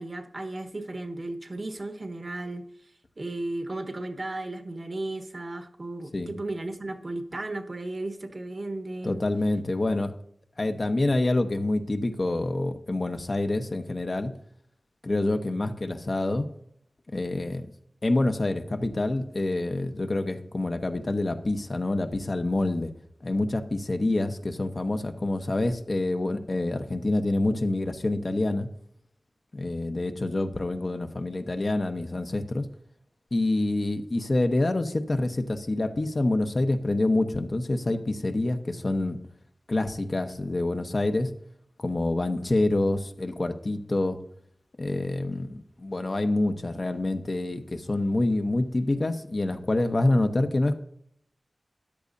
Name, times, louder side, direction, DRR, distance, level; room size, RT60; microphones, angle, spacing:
voice 1, 0.0-9.2, right 2 dB, 55° right, 5 dB, 1.3 m, -35 dB
voice 2, 9.0-10.1 10.6-14.3 15.0-16.5 17.1-17.7 18.0-22.9 23.2-28.7 29.5-32.6 33.3-39.2 39.7-41.3 41.8-44.2 44.8-50.8, left 2 dB, 55° left, 8 dB, 1.0 m, -27 dB
13.5 x 10.5 x 2.7 m, 0.69 s
cardioid pair, 40°, 0 cm